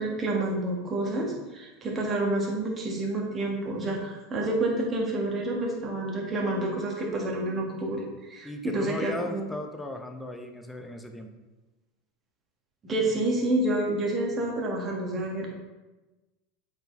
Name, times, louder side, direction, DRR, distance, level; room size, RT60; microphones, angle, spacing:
voice 1, 0.0-8.0 8.3-9.5 12.8-15.5, right 2 dB, 30° right, -1 dB, 1.6 m, -29 dB
voice 2, 8.4-11.3, left 1 dB, 10° left, 5 dB, 0.8 m, -36 dB
7.9 x 4.5 x 3.4 m, 1.1 s
hypercardioid pair, 85°, 0 cm